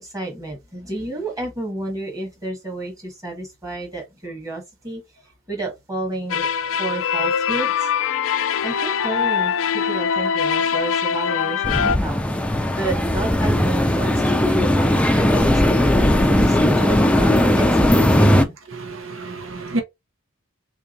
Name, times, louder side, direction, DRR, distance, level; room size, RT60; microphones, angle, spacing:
voice 1, 0.0-5.0 5.5-6.5 6.8-7.9 8.6-12.2 12.8-15.9 16.3-18.5, right 2 dB, 15° right, 1.5 m, -31 dB
sound 1, 6.3-12.0, left 7 dB, 70° left, 0.4 m, -22 dB
sound 2, 11.6-18.4, left 1 dB, 5° left, 0.4 m, -17 dB
voice 2, 18.8-19.8, right 2 dB, 70° right, 0.9 m, -29 dB
3.8 x 3.5 x 2.5 m
head